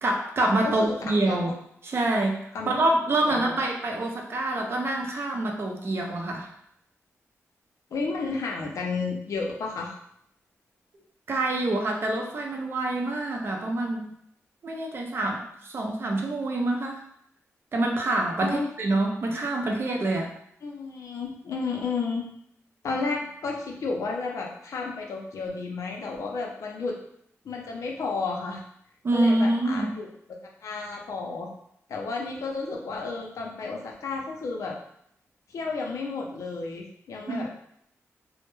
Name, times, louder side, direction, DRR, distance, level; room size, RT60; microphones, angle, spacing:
voice 1, 0.0-1.5 1.8-6.5 11.3-14.1 14.6-17.0 17.7-20.3 29.0-29.9 37.3-37.5, right 2 dB, 45° right, 1 dB, 0.5 m, -26 dB
voice 2, 0.6-1.4 2.5-2.7 3.3-3.5 7.9-9.9 18.4-18.7 20.6-22.3 22.8-27.0 27.4-28.6 29.1-30.1 30.6-31.5 31.9-34.8 35.5-37.6, left 4 dB, 80° left, 0 dB, 0.5 m, -32 dB
2.1 x 2.1 x 3.0 m, 0.71 s
wide cardioid pair, 115°, 5 cm